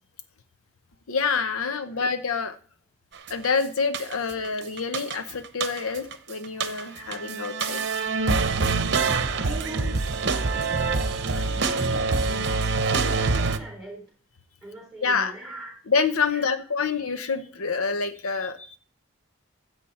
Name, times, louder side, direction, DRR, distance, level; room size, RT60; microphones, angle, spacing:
voice 1, 1.1-2.6 3.3-7.8 15.0-15.3 15.9-18.8, left 5 dB, 80° left, 9 dB, 0.8 m, -27 dB
voice 2, 1.6-2.0 9.3-10.0 10.5-14.1 14.6-15.7 16.3-16.4, right 1 dB, ahead, 1 dB, 3.8 m, -42 dB
sound 1, 3.3-3.5 3.9-4.5 4.8-6.1 6.4-13.6, right 4 dB, 55° right, 0.9 m, -25 dB
13.5 x 8.1 x 4.2 m, 0.42 s
head